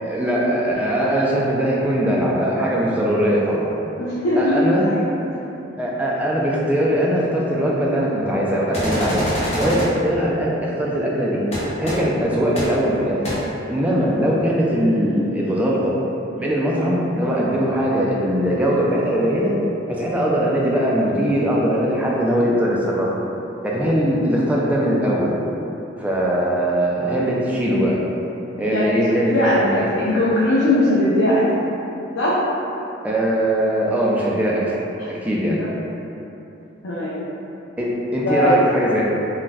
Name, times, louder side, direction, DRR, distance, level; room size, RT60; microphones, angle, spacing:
voice 1, 0.0-3.7 4.4-4.9 5.8-9.2 9.6-11.4 11.8-13.2 13.7-15.9 16.4-19.5 19.9-23.1 23.6-25.3 26.0-28.0 28.6-29.9 33.0-34.8 35.1-35.6 37.8-39.0, equal, 5° right, -5 dB, 0.3 m, -20 dB
voice 2, 4.0-5.2 28.6-28.8 29.3-31.4 32.2-32.4 35.6-35.7 36.8-37.2 38.2-38.5, left 1 dB, 85° left, -8 dB, 0.5 m, -19 dB
sound 1, 8.7-9.9 11.5-11.6 11.9-12.0 12.6-12.7 13.2-13.3, equal, 35° left, 0.7 m, -24 dB
2.4 x 2.2 x 3.9 m, 2.9 s
head